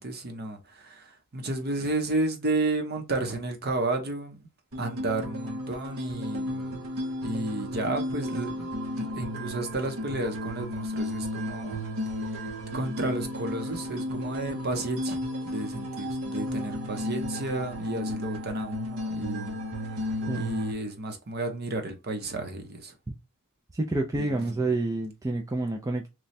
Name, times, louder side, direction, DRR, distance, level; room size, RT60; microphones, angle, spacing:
voice 1, 0.0-4.5 4.8-6.9 7.2-11.8 12.7-19.6 20.3-22.9 24.2-24.6, right 2 dB, 50° right, 0.8 m, -32 dB
sound 1, 4.7-20.7, left 1 dB, 75° right, 0.9 m, -34 dB
voice 2, 23.7-26.1, right 2 dB, 15° right, 0.3 m, -28 dB
3.1 x 2.3 x 4.1 m
head